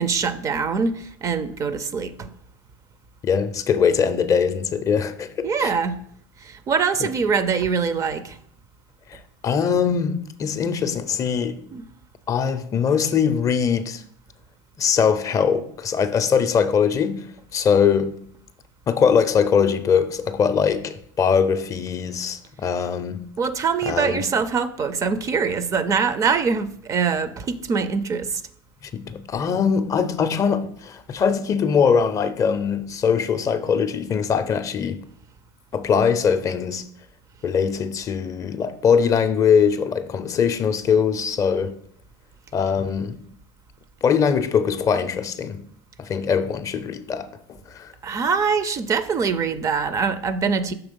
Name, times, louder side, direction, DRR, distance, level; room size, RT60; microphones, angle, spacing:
voice 1, 0.0-2.3 5.4-5.9 6.4-8.4 11.7-11.9 23.4-28.4 48.0-50.7, right 5 dB, 30° right, 0.4 m, -23 dB
voice 2, 3.2-5.7 7.0-7.1 9.1-11.6 12.3-14.0 14.8-17.3 17.5-18.2 18.9-23.2 23.8-24.3 28.9-35.0 35.7-36.8 37.4-41.8 42.5-43.2 44.0-45.6 46.0-47.9, left 6 dB, 30° left, 0.4 m, -22 dB
5.8 x 3.3 x 5.2 m
supercardioid pair, 115°, 11 cm